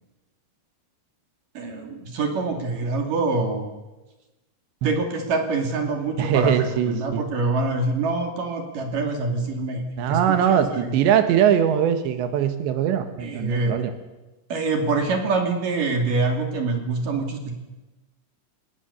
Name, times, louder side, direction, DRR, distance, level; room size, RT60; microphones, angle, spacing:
voice 1, 1.5-3.7 4.8-6.5 6.9-11.0 13.2-13.8 14.5-17.6, right 3 dB, 55° right, 3 dB, 4.0 m, -25 dB
voice 2, 6.2-7.2 10.0-13.9, right 9 dB, 90° right, 8 dB, 3.8 m, -21 dB
29.5 x 18.5 x 7.1 m, 1.1 s
omnidirectional pair, 5.0 m